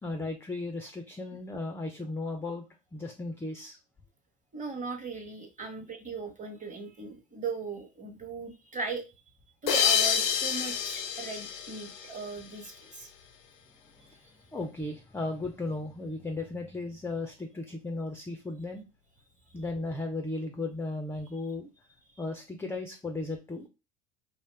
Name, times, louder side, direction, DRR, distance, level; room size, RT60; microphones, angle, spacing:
voice 1, 0.0-2.6 2.9-3.8 14.0-14.1 14.5-18.8 19.5-21.7 22.2-23.7, left 2 dB, 5° left, 4 dB, 0.3 m, -35 dB
voice 2, 4.5-9.0 9.6-13.1, right 4 dB, 20° right, 5 dB, 0.8 m, -38 dB
sound 1, 9.7-12.7, left 7 dB, 85° left, 0.6 m, -29 dB
2.6 x 2.3 x 3.2 m, 0.27 s
hypercardioid pair, 70°, 38 cm